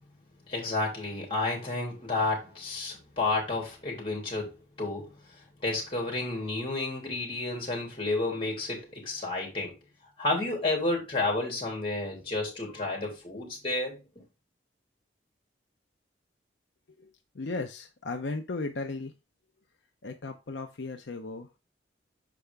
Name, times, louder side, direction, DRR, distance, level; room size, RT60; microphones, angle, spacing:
voice 1, 0.5-5.1 5.6-9.7 10.2-14.0, left 2 dB, 30° left, 3.0 m, -31 dB
voice 2, 17.4-19.1 20.0-21.6, left 3 dB, 75° left, 0.7 m, -35 dB
6.9 x 4.9 x 3.4 m
head